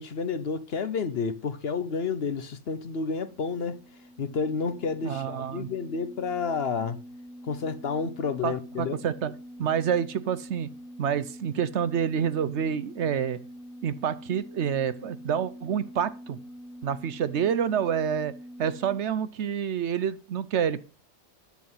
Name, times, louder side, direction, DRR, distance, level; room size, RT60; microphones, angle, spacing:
voice 1, 0.0-3.8 4.2-7.0 7.4-8.9, left 5 dB, 55° left, 1.0 m, -30 dB
sound 1, 2.8-19.0, equal, 75° left, 1.5 m, -45 dB
voice 2, 5.0-5.7 8.4-9.3 9.6-10.7 11.0-13.4 13.8-16.4 16.8-18.3 18.6-20.8, right 8 dB, 65° right, 0.9 m, -28 dB
10.5 x 7.1 x 5.5 m
omnidirectional pair, 1.4 m